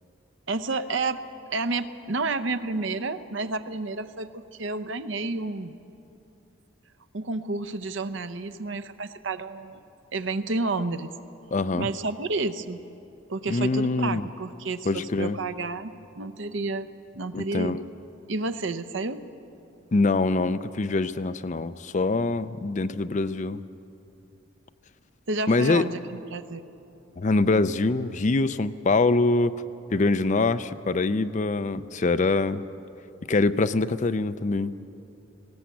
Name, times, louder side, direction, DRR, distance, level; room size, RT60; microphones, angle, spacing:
voice 1, 0.5-1.2 1.5-5.7 7.1-9.8 10.1-11.1 11.8-12.8 13.3-16.9 17.2-17.8 18.3-19.2 25.3-26.6, right 3 dB, 65° right, 11 dB, 0.8 m, -30 dB
voice 2, 11.5-11.9 13.5-14.3 14.9-15.4 17.3-17.9 19.9-23.6 25.5-25.9 27.2-29.5 29.9-32.6 33.3-34.7, left 3 dB, 35° left, 13 dB, 0.5 m, -24 dB
20.0 x 17.5 x 8.4 m, 2.8 s
head